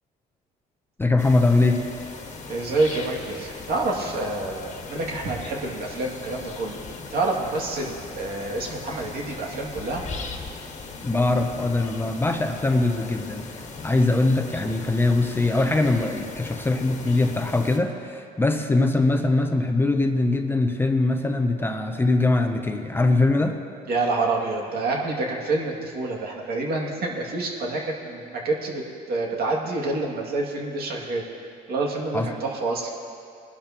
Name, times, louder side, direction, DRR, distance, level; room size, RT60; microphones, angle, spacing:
voice 1, 1.0-1.8 11.0-13.4 13.8-23.6 32.1-32.3, left 2 dB, 15° left, 5 dB, 0.7 m, -22 dB
sound 1, 1.2-17.8, left 4 dB, 40° left, 1.5 m, -39 dB
voice 2, 2.5-6.8 7.1-10.0 23.9-31.2 31.7-32.9, right 2 dB, 65° right, -2 dB, 2.4 m, -27 dB
20.5 x 12.0 x 3.0 m, 2.4 s
cardioid pair, 110°, 17 cm